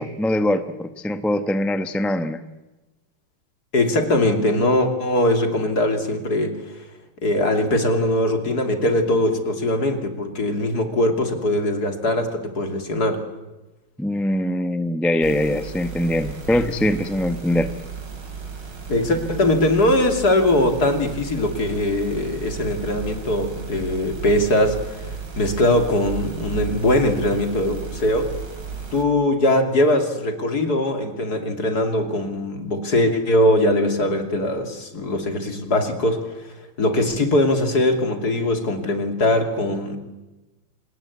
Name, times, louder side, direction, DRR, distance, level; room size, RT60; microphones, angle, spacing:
voice 1, 0.0-2.4 14.0-17.7, left 1 dB, ahead, 9 dB, 0.4 m, -22 dB
voice 2, 3.7-6.7 7.2-13.2 18.9-28.3 28.9-36.2 36.8-40.0, left 1 dB, 45° left, 6 dB, 3.2 m, -21 dB
sound 1, 15.2-29.0, right 6 dB, 55° right, 3.9 m, -34 dB
27.0 x 19.0 x 8.6 m, 1.1 s
omnidirectional pair, 2.3 m